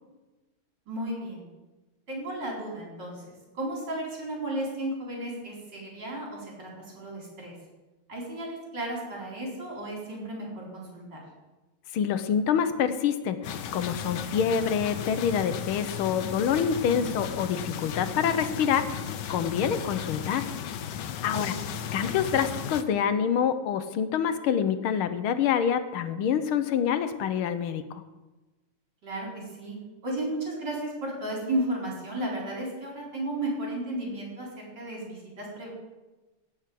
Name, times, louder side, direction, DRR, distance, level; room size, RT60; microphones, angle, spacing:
voice 1, 0.9-1.5 2.1-3.2 3.5-7.5 8.1-11.2 16.9-17.3 21.2-21.7 29.0-29.8 30.0-35.7, right 1 dB, 55° right, -3 dB, 4.8 m, -34 dB
voice 2, 11.9-19.0 19.3-20.5 21.2-21.6 21.9-28.0, left 8 dB, 80° left, 10 dB, 1.7 m, -26 dB
sound 1, 13.4-22.8, left 8 dB, 65° left, 1.3 m, -35 dB
17.0 x 6.2 x 7.6 m, 1.1 s
omnidirectional pair, 2.3 m